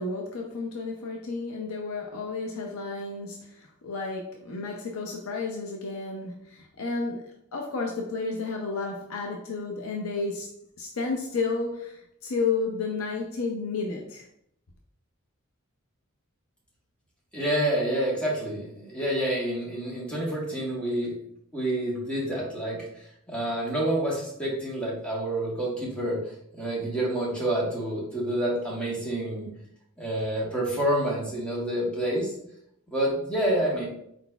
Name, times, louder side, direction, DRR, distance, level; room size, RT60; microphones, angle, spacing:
voice 1, 0.0-10.5 10.8-14.3, left 4 dB, 75° left, 1 dB, 0.5 m, -32 dB
voice 2, 17.3-21.1 21.5-26.2 26.5-29.5 30.0-32.3 32.9-33.8, right 1 dB, 5° left, -5 dB, 1.3 m, -28 dB
4.4 x 3.9 x 2.3 m, 0.73 s
head